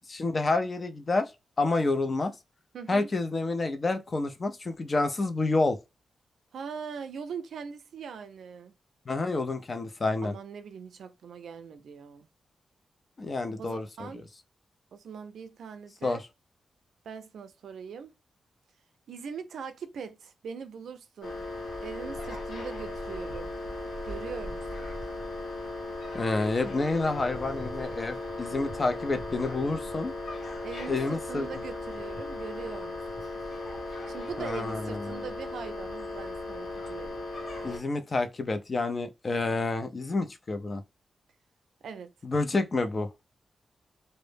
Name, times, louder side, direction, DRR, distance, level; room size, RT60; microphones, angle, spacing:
voice 1, 0.1-1.3 1.6-2.3 2.9-5.8 9.1-10.3 13.2-14.1 16.0-16.2 26.1-30.1 30.9-31.5 34.4-35.2 37.6-40.8 42.2-43.1, left 3 dB, 35° left, 0.4 m, -29 dB
voice 2, 2.7-3.1 6.5-8.8 10.2-12.3 13.6-14.2 14.9-16.2 17.0-18.1 19.1-21.4 21.8-23.5 24.0-24.9 30.6-33.3 34.1-37.2 41.8-42.1, right 6 dB, 85° right, 0.3 m, -41 dB
sound 1, 21.2-37.8, left 2 dB, 75° left, 0.8 m, -37 dB
2.0 x 2.0 x 3.1 m
wide cardioid pair, 105°, 0 cm